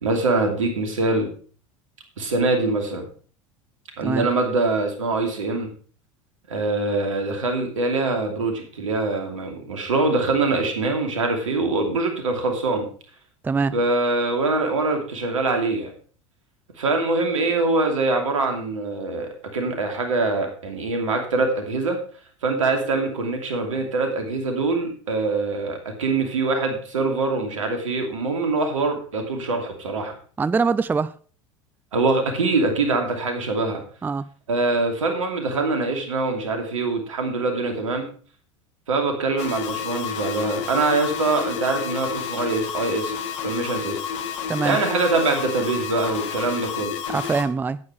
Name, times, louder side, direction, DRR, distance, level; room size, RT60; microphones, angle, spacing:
voice 1, 0.0-1.3 2.2-3.1 4.0-5.7 6.5-12.9 13.7-15.9 16.8-22.0 22.4-30.2 31.9-33.8 34.5-38.1 38.9-43.2 43.4-44.0 44.6-46.9, right 3 dB, 80° right, 2.6 m, -24 dB
voice 2, 30.4-31.2 34.0-34.3 44.5-44.8 47.1-47.8, right 4 dB, 10° right, 0.4 m, -23 dB
sound 1, 39.4-47.4, left 7 dB, 65° left, 1.7 m, -30 dB
9.6 x 9.5 x 4.8 m
hypercardioid pair, 80°, 16 cm